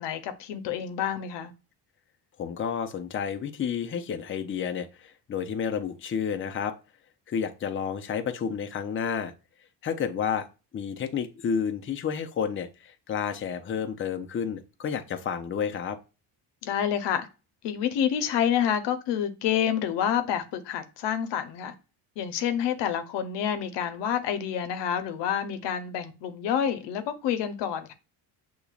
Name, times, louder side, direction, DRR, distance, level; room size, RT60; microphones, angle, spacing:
voice 1, 0.0-1.5 16.6-17.3 17.6-21.7 22.2-27.9, left 9 dB, 85° left, 0.9 m, -28 dB
voice 2, 2.4-6.7 7.3-9.3 9.8-10.5 10.7-16.0, left 7 dB, 30° left, 0.6 m, -30 dB
6.6 x 3.0 x 2.3 m
cardioid pair, 115°, 41 cm